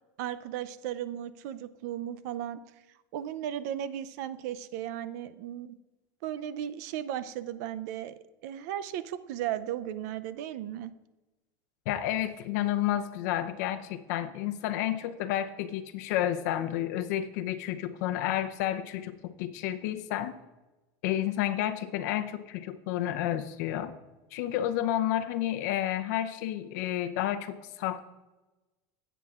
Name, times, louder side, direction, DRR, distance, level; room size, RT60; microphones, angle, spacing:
voice 1, 0.2-2.6 3.1-5.8 6.2-10.9, right 11 dB, 65° right, 13 dB, 0.5 m, -36 dB
voice 2, 11.9-20.4 21.0-23.9 24.3-28.0, left 12 dB, 70° left, 9 dB, 0.7 m, -31 dB
16.5 x 8.0 x 2.4 m, 1.1 s
cardioid pair, 170°, 10 cm